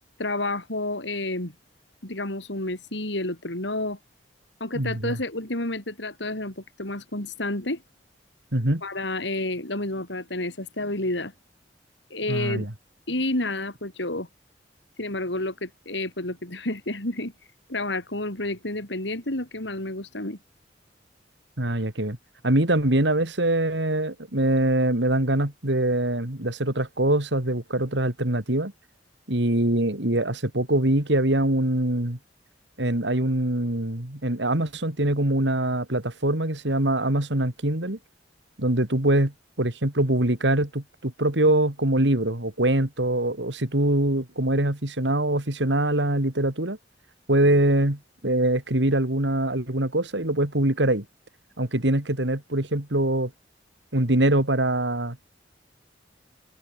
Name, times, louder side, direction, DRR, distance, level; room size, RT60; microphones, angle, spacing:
voice 1, 0.2-1.5 2.0-4.0 4.6-7.8 8.8-11.3 12.1-12.7 13.1-14.3 15.0-17.3 17.7-20.4, left 2 dB, 75° left, 5.1 m, -30 dB
voice 2, 4.7-5.2 8.5-8.8 12.3-12.7 21.6-22.2 22.4-28.7 29.3-32.2 32.8-38.0 38.6-46.8 47.3-51.0 51.6-53.3 53.9-55.2, right 1 dB, 75° right, 3.1 m, -23 dB
head